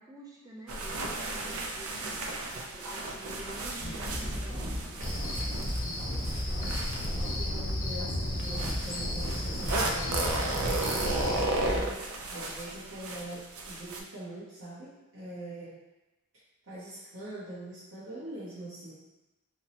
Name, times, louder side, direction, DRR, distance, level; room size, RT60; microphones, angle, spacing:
voice 1, 0.0-5.1, right 1 dB, 15° right, -2 dB, 0.4 m, -48 dB
sound 1, 0.7-7.7 8.4-14.0, right 2 dB, 85° right, 0.4 m, -34 dB
voice 2, 1.4-1.8 6.0-6.8 7.2-12.0 12.3-15.8 16.6-18.9, right 1 dB, 60° right, -11 dB, 0.8 m, -43 dB
sound 2, 3.8-11.8, equal, 45° right, 1.3 m, -35 dB
Cricket, 5.0-11.4, left 1 dB, 35° left, 0.5 m, -36 dB
4.4 x 2.0 x 2.8 m, 1.0 s
head